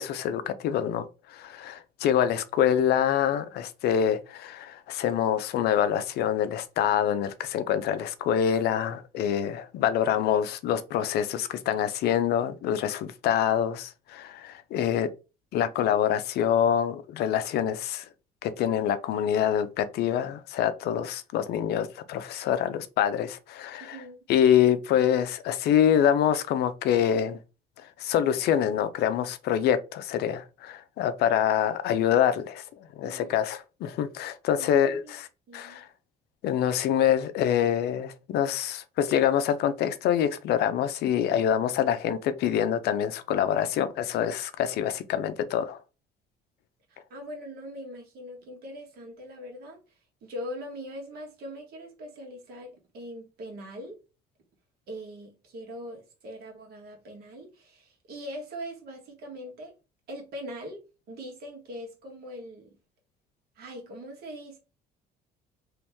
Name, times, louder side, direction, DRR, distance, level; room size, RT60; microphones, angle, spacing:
voice 1, 0.0-15.1 15.5-18.0 18.4-24.0 24.3-27.4 27.8-35.0 35.5-35.9 36.4-45.8, left 9 dB, 70° left, 0.5 m, -26 dB
voice 2, 23.8-24.2 33.0-33.4 34.6-35.2 35.5-35.8 46.9-49.8 50.2-54.0 54.9-59.7 60.1-62.8 63.5-64.6, equal, 70° right, 1.5 m, -41 dB
3.1 x 2.9 x 3.5 m
cardioid pair, 110°, 17 cm